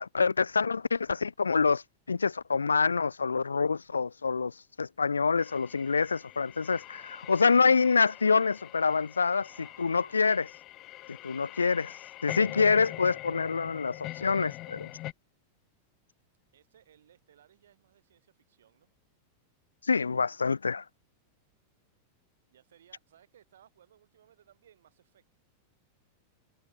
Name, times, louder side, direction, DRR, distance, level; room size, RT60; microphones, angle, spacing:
voice 1, 0.0-1.8 2.1-9.5 9.8-10.4 11.2-11.9 12.2-14.9 19.9-20.8, left 5 dB, 75° left, 0.3 m, -26 dB
sound 1, 5.4-15.1, left 17 dB, 35° left, 1.6 m, -43 dB
voice 2, 9.5-10.2 12.6-12.9 16.5-18.9 22.5-25.2, right 10 dB, 60° right, 4.8 m, -62 dB
figure-of-eight pair, 90°, 0 cm